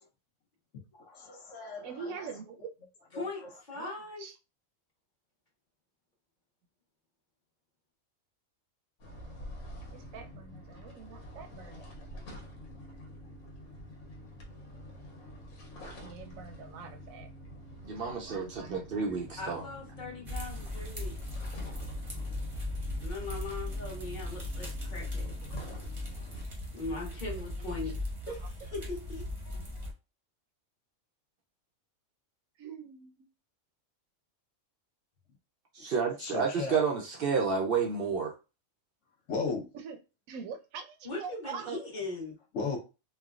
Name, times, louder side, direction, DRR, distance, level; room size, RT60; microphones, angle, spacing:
voice 1, 1.0-2.1 3.1-3.3 36.2-36.8 39.3-39.7 42.5-42.8, left 4 dB, 65° left, 1.0 m, -35 dB
voice 2, 1.8-2.7 3.8-4.4 9.9-11.9 16.0-17.3 18.0-18.7 27.6-27.8 32.6-33.3 39.7-40.0 40.3-41.8, right 6 dB, 85° right, 1.0 m, -44 dB
voice 3, 3.1-4.2 19.4-21.4 23.0-25.4 26.3-28.0 28.3-28.4 28.7-29.9 41.0-42.4, left 3 dB, 40° left, 1.1 m, -40 dB
sound 1, 9.0-26.4, left 1 dB, 85° left, 1.2 m, -47 dB
voice 4, 17.8-19.6 35.7-38.3, right 5 dB, 65° right, 0.5 m, -30 dB
sound 2, 20.3-29.9, left 1 dB, 30° right, 0.7 m, -38 dB
3.2 x 2.1 x 2.3 m
omnidirectional pair, 1.4 m